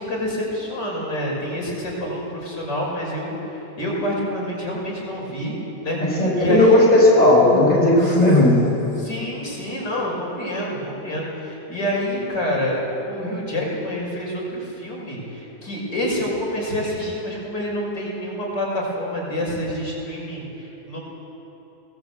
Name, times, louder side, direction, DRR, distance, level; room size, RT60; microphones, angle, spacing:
voice 1, 0.0-5.6 5.8-6.8 8.0-8.2 9.0-21.0, left 1 dB, 90° left, -4 dB, 6.9 m, -27 dB
voice 2, 6.0-8.6, left 1 dB, 20° left, -4 dB, 5.8 m, -15 dB
24.5 x 19.0 x 8.3 m, 3.0 s
omnidirectional pair, 1.8 m